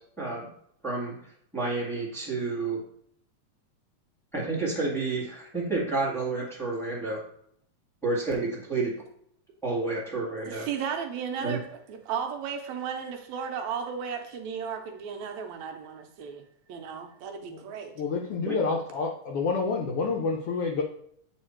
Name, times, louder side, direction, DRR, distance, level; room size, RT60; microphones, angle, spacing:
voice 1, 0.2-0.5 0.8-2.8 4.3-7.2 8.0-8.9 9.6-10.7 11.4-11.6 18.4-18.6, right 3 dB, ahead, -6 dB, 1.1 m, -30 dB
voice 2, 10.5-17.9, right 7 dB, 80° right, 4 dB, 1.9 m, -35 dB
voice 3, 18.0-20.8, left 4 dB, 80° left, 1 dB, 1.3 m, -28 dB
8.6 x 3.2 x 4.4 m, 0.69 s
omnidirectional pair, 3.4 m